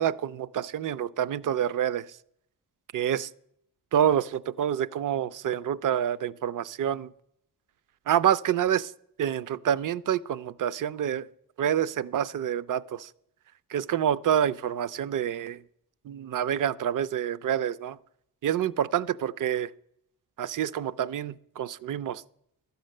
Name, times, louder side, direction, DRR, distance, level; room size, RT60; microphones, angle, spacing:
voice 1, 0.0-2.1 2.9-3.3 3.9-7.1 8.1-8.9 9.2-11.3 11.6-13.1 13.7-15.6 16.1-18.0 18.4-19.7 20.4-22.2, right 9 dB, 50° right, 0.5 m, -27 dB
12.0 x 7.9 x 6.5 m
cardioid pair, 75°, 40 cm